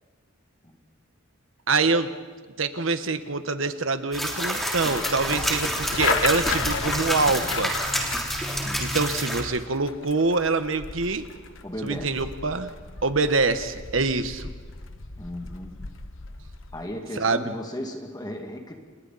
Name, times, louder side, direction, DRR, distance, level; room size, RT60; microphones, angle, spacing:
voice 1, 1.7-2.1 2.6-7.7 8.8-11.3 11.8-12.7 13.0-14.5 17.2-17.5, right 3 dB, 80° right, 9 dB, 1.3 m, -25 dB
sound 1, 4.1-9.4, equal, ahead, 3.3 m, -28 dB
sound 2, 4.6-16.9, left 4 dB, 75° left, 1.2 m, -34 dB
voice 2, 11.6-12.1 15.2-15.8 16.7-18.7, equal, 20° left, 2 dB, 2.2 m, -35 dB
30.0 x 29.0 x 4.2 m, 1.5 s
head